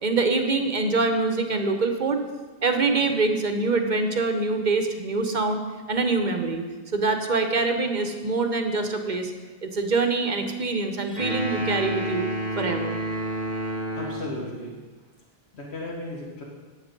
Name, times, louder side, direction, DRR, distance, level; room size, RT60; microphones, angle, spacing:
voice 1, 0.0-2.2 2.6-5.6 5.9-6.6 6.9-9.3 9.6-12.3 12.6-13.0, right 3 dB, 45° right, 5 dB, 1.0 m, -24 dB
sound 1, 11.2-14.5, right 1 dB, 45° left, 4.4 m, -29 dB
voice 2, 13.9-14.8 15.5-16.4, left 2 dB, 80° left, -3 dB, 1.7 m, -35 dB
10.5 x 8.2 x 5.2 m, 1.3 s
omnidirectional pair, 1.1 m